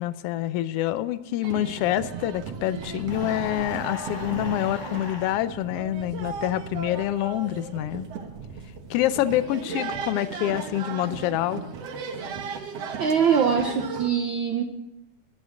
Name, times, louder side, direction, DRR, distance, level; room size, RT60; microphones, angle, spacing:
voice 1, 0.0-8.1 8.9-11.6, left 13 dB, 85° left, 14 dB, 1.3 m, -26 dB
sound 1, 1.4-14.1, right 5 dB, 60° right, 2.2 m, -36 dB
sound 2, 3.1-5.4, left 4 dB, 55° left, 2.6 m, -37 dB
voice 2, 13.0-14.6, right 7 dB, 80° right, 6 dB, 1.1 m, -22 dB
13.0 x 10.5 x 6.4 m, 0.97 s
omnidirectional pair, 3.4 m